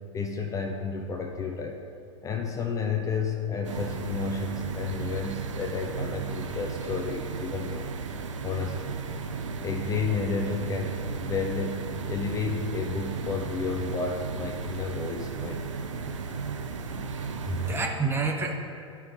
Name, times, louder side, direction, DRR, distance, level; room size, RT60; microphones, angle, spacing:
voice 1, 0.1-1.8 2.2-7.9 8.4-9.0 9.6-10.9 11.2-15.8, left 4 dB, 20° left, 2 dB, 0.6 m, -31 dB
sound 1, 3.6-17.9, right 5 dB, 70° right, 0.6 m, -35 dB
voice 2, 16.9-18.5, right 4 dB, 15° right, 1 dB, 0.8 m, -29 dB
12.5 x 5.7 x 2.7 m, 2.5 s
figure-of-eight pair, 90°, 16 cm